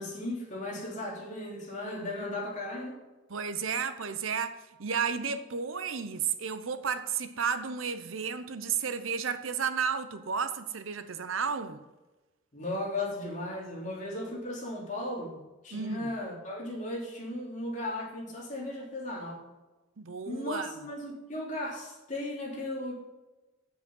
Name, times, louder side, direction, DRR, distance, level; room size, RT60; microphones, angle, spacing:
voice 1, 0.0-3.0 12.5-15.4 15.6-19.4 20.3-22.9, left 1 dB, 40° left, 3.2 m, -36 dB
voice 2, 3.3-11.8 15.7-16.1 20.0-20.7, right 6 dB, 90° right, 0.8 m, -32 dB
8.7 x 7.6 x 5.5 m
head